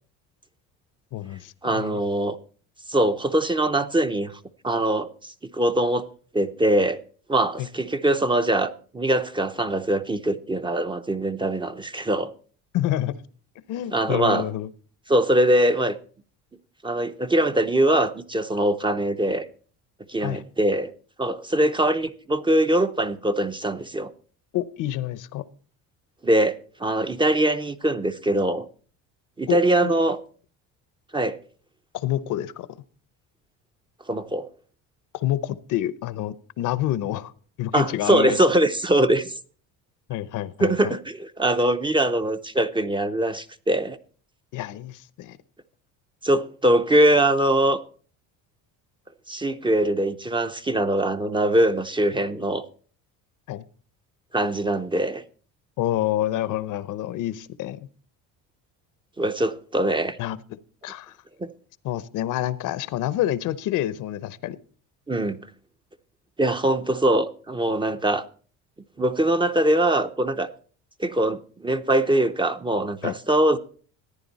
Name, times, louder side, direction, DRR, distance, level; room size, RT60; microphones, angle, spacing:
voice 1, 1.1-2.0 7.6-7.7 12.7-13.2 13.7-14.7 20.2-20.4 24.5-25.4 29.5-29.9 31.9-32.7 35.1-37.3 37.6-38.4 40.1-40.9 44.5-45.4 53.5-53.6 55.8-57.9 60.2-60.4 60.8-61.2 61.8-64.6 73.0-73.1, left 13 dB, 60° left, 0.7 m, -28 dB
voice 2, 1.6-2.4 2.9-5.1 5.5-6.1 6.3-7.0 7.3-12.3 13.9-14.5 15.1-16.0 16.8-19.5 20.1-20.9 21.2-24.1 26.2-28.7 29.4-30.2 31.1-31.4 34.1-34.5 37.7-39.3 40.6-44.0 46.2-47.8 49.3-52.6 54.3-55.2 59.2-60.2 61.4-61.5 65.1-65.4 66.4-68.3 69.0-70.5 71.0-73.6, right 1 dB, 15° right, 0.6 m, -22 dB
14.5 x 9.6 x 4.1 m
cardioid pair, 120°, 35 cm